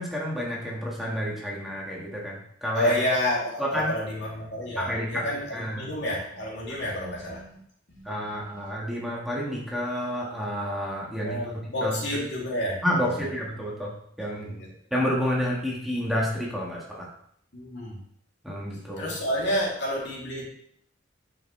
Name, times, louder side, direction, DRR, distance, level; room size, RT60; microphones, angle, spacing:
voice 1, 0.0-2.9 3.6-3.9 4.8-5.3 5.5-5.9 8.1-11.9 12.8-14.5 14.9-17.1 18.4-19.1, equal, ahead, -5 dB, 1.8 m, -30 dB
voice 2, 2.7-7.6 7.9-8.3 11.2-13.3 14.4-14.7 17.5-18.0 19.0-20.5, left 1 dB, 60° left, -4 dB, 2.9 m, -30 dB
9.3 x 6.9 x 3.3 m, 0.67 s
head